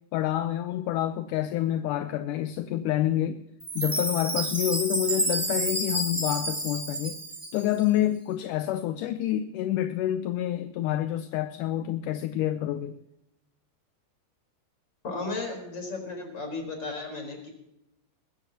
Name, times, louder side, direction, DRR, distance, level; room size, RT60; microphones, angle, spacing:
voice 1, 0.1-3.4 3.8-7.2 7.5-13.0, left 12 dB, 80° left, 2.1 m, -28 dB
Chime, 3.6-7.8, right 1 dB, 5° right, 2.7 m, -30 dB
voice 2, 15.0-17.5, left 3 dB, 30° left, 4.9 m, -34 dB
21.0 x 15.0 x 2.9 m
omnidirectional pair, 3.9 m